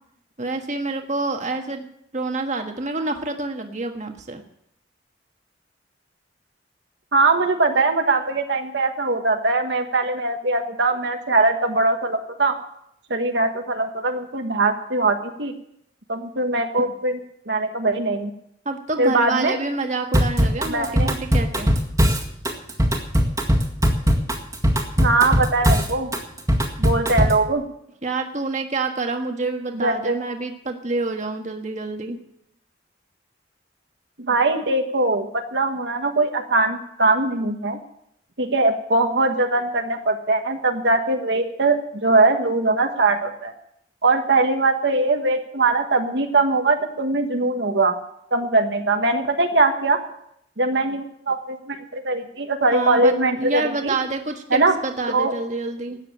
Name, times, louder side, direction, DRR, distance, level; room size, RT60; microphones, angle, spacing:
voice 1, 0.4-1.8 2.1-4.4 16.8-16.9 18.6-21.7 28.0-32.2 52.7-56.0, right 3 dB, 40° right, 4 dB, 1.5 m, -27 dB
voice 2, 7.1-12.6 13.1-15.5 16.1-17.2 17.5-18.3 19.0-19.6 20.7-21.1 25.0-26.1 26.8-27.6 29.7-30.2 34.2-37.8 38.4-43.5 44.0-48.0 48.3-50.0 50.6-53.9 54.5-54.8 55.1-55.3, right 3 dB, 65° right, 4 dB, 1.4 m, -21 dB
Drum kit / Drum, 20.1-27.5, equal, 15° right, 1.9 m, -20 dB
13.5 x 9.3 x 8.9 m, 0.75 s
head